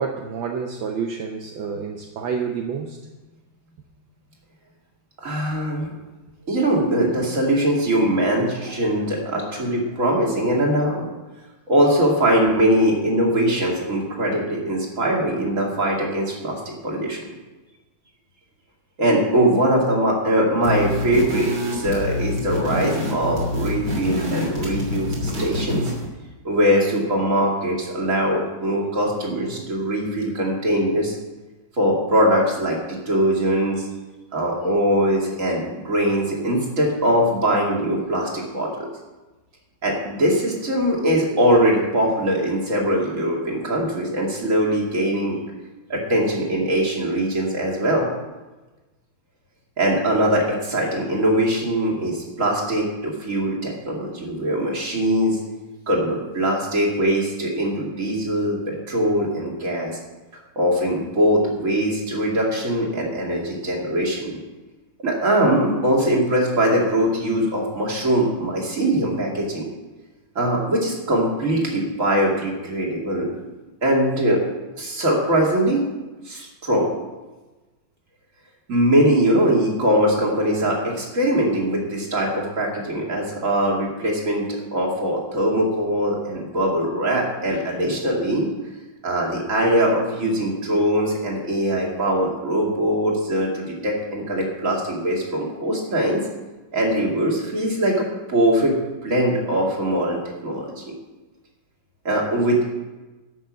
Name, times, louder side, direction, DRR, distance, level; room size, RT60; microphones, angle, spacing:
voice 1, 0.0-3.0, right 6 dB, 70° right, 2 dB, 1.6 m, -28 dB
voice 2, 5.2-5.9 6.5-11.1 11.7-17.2 19.0-25.9 26.4-31.1 31.8-33.9 34.3-38.7 39.8-45.4 45.9-48.1 49.8-55.4 55.9-60.0 60.6-64.4 65.0-69.6 70.3-73.3 73.8-74.4 74.7-75.8 76.3-76.9 78.7-88.5 89.0-96.2 96.7-98.7 99.0-100.9 102.0-102.6, right 1 dB, 40° right, -2 dB, 2.8 m, -21 dB
sound 1, 20.6-26.1, left 1 dB, 55° right, 3.7 m, -26 dB
11.5 x 6.4 x 7.4 m, 1.2 s
omnidirectional pair, 2.2 m